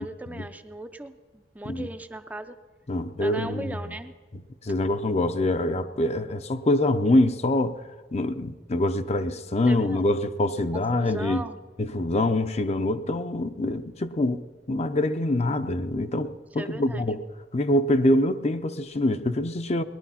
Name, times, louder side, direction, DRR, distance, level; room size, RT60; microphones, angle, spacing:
voice 1, 0.0-2.6 3.2-4.1 9.6-10.1 10.7-11.6 16.5-17.2, right 1 dB, 10° right, 0.5 m, -38 dB
voice 2, 2.9-3.8 4.6-7.8 8.1-11.4 11.8-17.2 17.5-19.8, left 1 dB, 35° left, 0.6 m, -25 dB
19.5 x 11.5 x 5.7 m
head